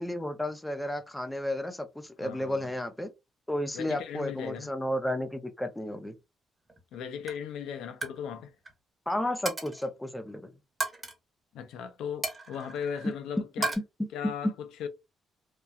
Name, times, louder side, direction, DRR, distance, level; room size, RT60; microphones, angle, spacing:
voice 1, 0.0-3.1 3.5-6.1 9.1-10.5 13.0-13.1 14.2-14.3, left 1 dB, 10° left, 0.6 m, -32 dB
voice 2, 2.2-2.7 3.7-4.7 6.9-8.5 11.5-13.7 14.1-14.9, left 8 dB, 85° left, 0.5 m, -37 dB
Coin (dropping), 6.7-7.0 7.3-7.5 7.8-8.2 8.5-8.7 9.5-9.9 10.8-11.1 12.2-13.1 13.6-13.8, right 3 dB, 25° right, 1.1 m, -34 dB
2.9 x 2.2 x 2.3 m
cardioid pair, 90°, 0 cm